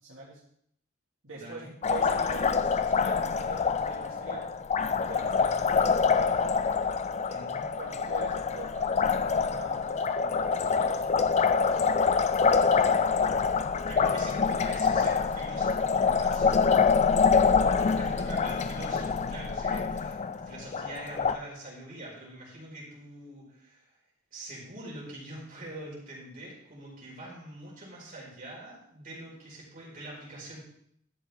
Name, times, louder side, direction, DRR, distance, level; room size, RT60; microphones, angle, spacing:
voice 1, 0.0-0.4 1.2-4.5 4.8-6.3 7.8-12.6 17.5-17.9, right 2 dB, 80° right, -6 dB, 2.0 m, -44 dB
voice 2, 1.3-1.7 7.3-7.7 13.9-16.7 17.8-23.9 24.3-30.6, right 1 dB, 45° right, -4 dB, 4.8 m, -44 dB
Liquid, 1.8-21.4, left 5 dB, 35° left, 0.4 m, -26 dB
12.5 x 7.8 x 3.6 m, 0.70 s
head